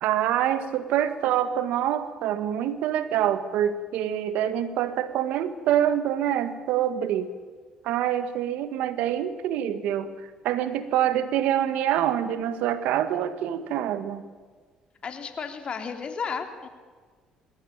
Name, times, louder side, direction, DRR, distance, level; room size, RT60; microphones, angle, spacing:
voice 1, 0.0-7.3 7.8-14.2, right 10 dB, 80° right, 12 dB, 1.8 m, -26 dB
voice 2, 15.0-16.7, left 5 dB, 45° left, 6 dB, 3.1 m, -33 dB
21.0 x 17.0 x 9.0 m, 1.5 s
supercardioid pair, 70°, 2 cm